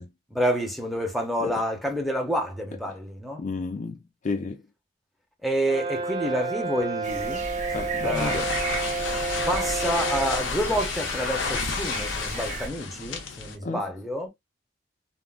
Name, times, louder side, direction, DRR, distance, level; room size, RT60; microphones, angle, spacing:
voice 1, 0.3-3.4 5.4-7.4 8.0-8.3 9.5-14.3, equal, ahead, 0.7 m, -28 dB
voice 2, 3.4-4.6 7.7-8.5 13.6-13.9, left 3 dB, 40° left, 0.4 m, -32 dB
Brass instrument, 5.6-10.5, right 3 dB, 25° right, 1.6 m, -30 dB
sound 1, 7.0-12.7, right 3 dB, 40° right, 0.8 m, -35 dB
sound 2, 8.1-13.6, left 5 dB, 90° left, 0.6 m, -31 dB
3.6 x 2.0 x 2.3 m
head